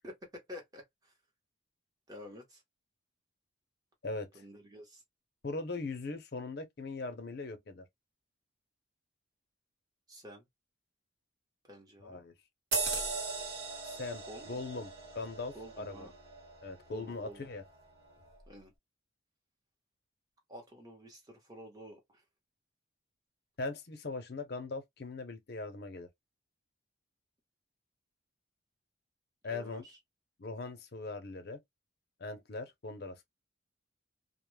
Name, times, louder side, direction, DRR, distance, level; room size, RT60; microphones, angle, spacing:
voice 1, 0.0-1.1 2.1-2.6 4.3-5.0 10.1-10.4 11.7-12.2 14.2-14.6 15.5-16.1 16.9-17.5 18.5-18.7 20.5-22.2 29.5-30.0, equal, 20° right, 0.8 m, -50 dB
voice 2, 4.0-4.4 5.4-7.9 12.0-12.3 13.8-16.1 16.6-17.6 23.6-26.1 29.4-29.8 30.4-31.6 32.2-33.3, left 3 dB, 50° left, 0.6 m, -40 dB
sound 1, 12.7-17.7 18.1-18.3, right 4 dB, 55° right, 1.1 m, -39 dB
2.2 x 2.0 x 3.1 m
head